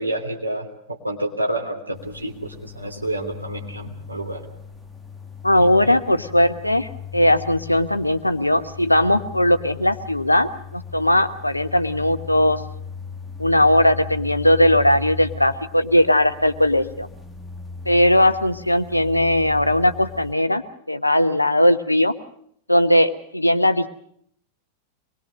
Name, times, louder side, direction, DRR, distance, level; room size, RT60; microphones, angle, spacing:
voice 1, 0.0-4.4 5.6-6.0, right 1 dB, 85° right, 3 dB, 3.2 m, -29 dB
sound 1, 1.9-20.3, left 5 dB, 5° left, 2.1 m, -37 dB
voice 2, 5.4-12.6 13.4-17.1 17.8-22.1 22.7-23.9, left 1 dB, 85° left, 11 dB, 1.1 m, -18 dB
25.0 x 21.0 x 6.5 m, 0.68 s
figure-of-eight pair, 90°, 0 cm